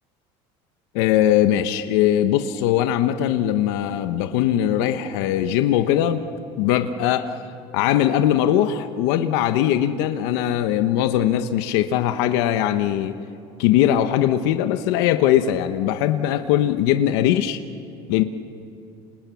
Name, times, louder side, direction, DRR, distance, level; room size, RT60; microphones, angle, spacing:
voice 1, 0.9-6.2 6.6-7.3 7.7-13.2 13.6-17.6 18.1-18.2, left 11 dB, 85° left, 8 dB, 1.1 m, -20 dB
29.0 x 27.5 x 7.1 m, 2.7 s
cardioid pair, 130°, 13 cm